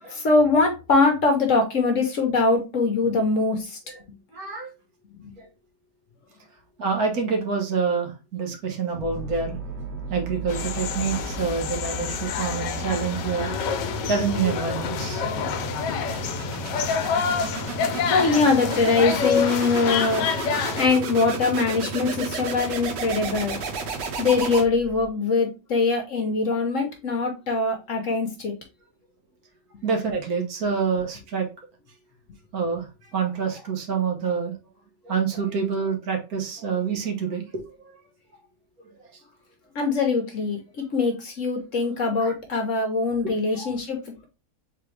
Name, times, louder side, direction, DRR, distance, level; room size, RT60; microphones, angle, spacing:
voice 1, 0.1-3.8 5.2-5.3 18.1-20.3 20.8-23.6 24.2-28.5 39.7-40.6 40.9-44.3, left 3 dB, 55° left, 3 dB, 1.0 m, -22 dB
voice 2, 4.3-4.7 5.4-5.5 6.8-9.6 10.1-15.2 17.3-17.4 29.8-31.5 32.5-32.9 33.1-34.5 35.0-37.9 39.0-39.1 42.2-42.3 43.5-43.7, right 5 dB, 60° right, 2 dB, 1.5 m, -27 dB
sound 1, 8.9-25.1, right 3 dB, 90° right, 1.5 m, -33 dB
sound 2, 10.5-20.9, left 7 dB, 90° left, 1.3 m, -28 dB
4.0 x 3.4 x 3.1 m, 0.29 s
omnidirectional pair, 1.8 m